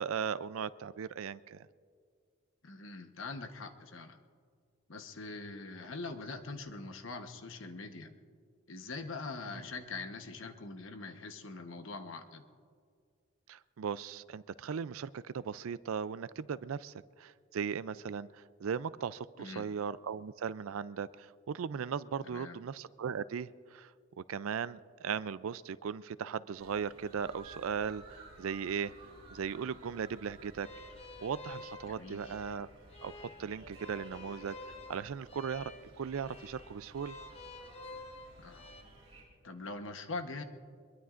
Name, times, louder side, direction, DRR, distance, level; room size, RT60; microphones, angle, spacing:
voice 1, 0.0-1.7 13.5-23.9 24.3-28.9 29.3-30.7 31.2-32.7 33.0-35.7 36.0-37.2, right 7 dB, 85° right, 16 dB, 0.4 m, -38 dB
voice 2, 2.6-4.2 4.9-8.1 8.7-12.4 19.4-19.7 22.2-22.6 31.9-32.3 38.4-38.7 39.4-40.4, left 3 dB, 70° left, 7 dB, 1.1 m, -43 dB
sound 1, 26.6-39.2, right 2 dB, 25° right, 4.8 m, -55 dB
sound 2, 30.6-38.8, left 2 dB, 30° left, 0.8 m, -50 dB
23.5 x 22.0 x 2.5 m, 2.1 s
head